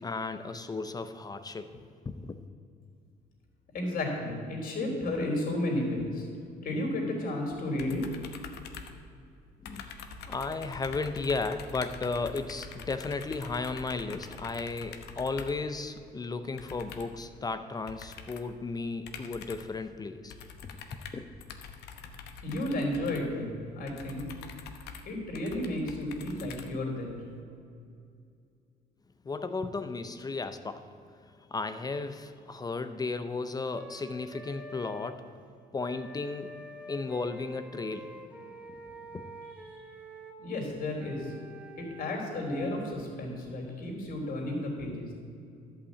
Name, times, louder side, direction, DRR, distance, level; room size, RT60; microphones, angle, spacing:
voice 1, 0.0-2.4 9.6-20.4 20.6-20.7 21.1-21.2 29.2-35.3 35.7-38.2 38.7-38.8 39.1-39.3, left 3 dB, 25° left, 0.5 m, -35 dB
voice 2, 3.7-6.3 6.6-8.0 22.4-24.3 25.0-27.2 40.4-41.3 41.8-45.1, left 1 dB, 55° left, 3.3 m, -32 dB
sound 1, 7.8-9.4 9.6-15.7 16.6-17.2 17.9-18.5 19.1-19.8 20.3-27.1, left 6 dB, 75° left, 1.0 m, -45 dB
Wind instrument woodwind instrument, 33.8-35.2 35.8-40.4 41.0-42.9, equal, 5° right, 0.9 m, -47 dB
11.0 x 5.7 x 8.2 m
cardioid pair, 110°, 17 cm